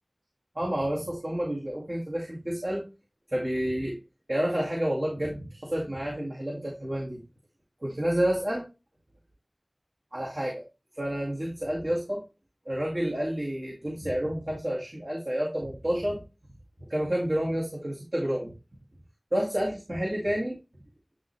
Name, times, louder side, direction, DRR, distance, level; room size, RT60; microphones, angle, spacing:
voice 1, 0.5-2.8 3.3-4.0 4.3-7.2 7.8-8.7 10.1-10.6 11.0-12.2 12.7-16.2 16.9-18.5 19.3-20.6, equal, 55° right, -4 dB, 2.1 m, -29 dB
9.8 x 3.4 x 3.2 m, 0.28 s
wide cardioid pair, 40°, 0 cm